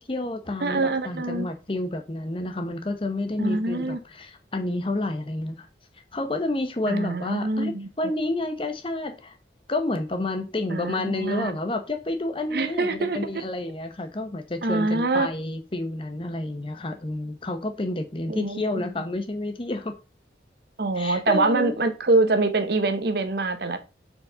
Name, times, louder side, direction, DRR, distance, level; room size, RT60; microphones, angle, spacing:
voice 1, 0.0-5.7 6.1-7.7 8.0-9.4 9.7-19.9 21.0-21.8, left 2 dB, 30° left, 0.8 m, -29 dB
voice 2, 0.6-1.5 3.4-4.0 6.9-7.9 10.7-11.6 12.5-13.2 14.6-15.3 18.3-18.6 20.8-23.8, right 3 dB, 60° right, 0.7 m, -24 dB
4.7 x 4.1 x 5.0 m
head